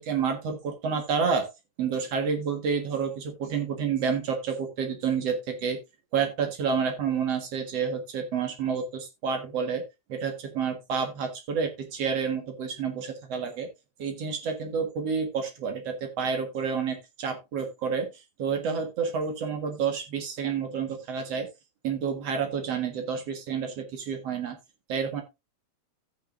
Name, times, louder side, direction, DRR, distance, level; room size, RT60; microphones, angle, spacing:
voice 1, 0.0-1.5 1.8-5.8 6.1-9.8 10.1-13.7 14.0-21.5 21.8-24.6 24.9-25.2, right 6 dB, 55° right, 4 dB, 2.6 m, -29 dB
15.5 x 6.4 x 2.6 m, 0.23 s
omnidirectional pair, 3.6 m